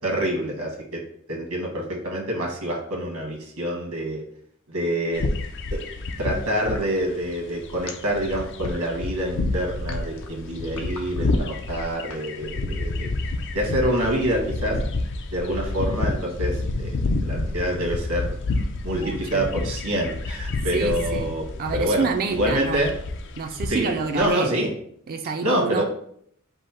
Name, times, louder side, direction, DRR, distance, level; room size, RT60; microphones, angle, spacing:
voice 1, 0.0-1.0 1.3-4.2 4.7-5.2 5.7-5.8 6.2-13.1 13.5-14.8 15.3-16.9 17.2-18.3 18.8-21.5 21.7-22.9 23.7-24.7 25.4-25.8, right 1 dB, 90° right, 0 dB, 1.4 m, -26 dB
sound 1, 5.1-24.3, left 2 dB, 55° left, 0.4 m, -29 dB
sound 2, 6.7-12.3, left 4 dB, 85° left, 0.8 m, -41 dB
voice 2, 18.9-19.4 20.7-21.3 21.6-22.9 23.4-24.5 25.1-25.8, right 5 dB, 45° right, 5 dB, 0.3 m, -28 dB
5.2 x 2.0 x 4.3 m, 0.66 s
head